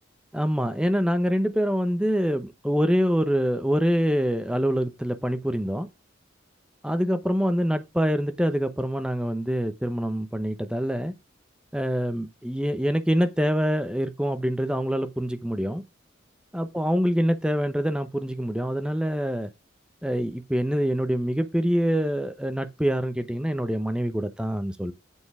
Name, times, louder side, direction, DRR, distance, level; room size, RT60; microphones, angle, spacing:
voice 1, 0.3-5.9 6.8-11.1 11.7-15.8 16.5-19.5 20.0-24.9, equal, 5° right, 0.8 m, -25 dB
8.2 x 5.2 x 4.8 m
head